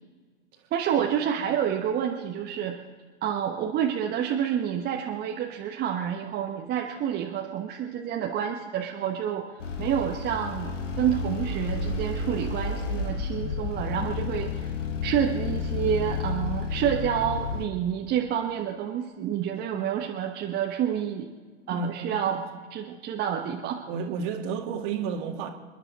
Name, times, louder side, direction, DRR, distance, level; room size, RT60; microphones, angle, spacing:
voice 1, 0.7-2.8 3.2-14.7 15.0-21.3 21.7-22.4 22.7-23.8, right 9 dB, 25° right, 1 dB, 1.2 m, -28 dB
sound 1, 9.6-17.7, left 4 dB, 75° left, 1.8 m, -31 dB
voice 2, 21.7-22.4 22.9-23.0 23.9-25.5, right 6 dB, 40° right, 4 dB, 2.1 m, -32 dB
29.0 x 11.0 x 4.1 m, 1.5 s
figure-of-eight pair, 110°, 38 cm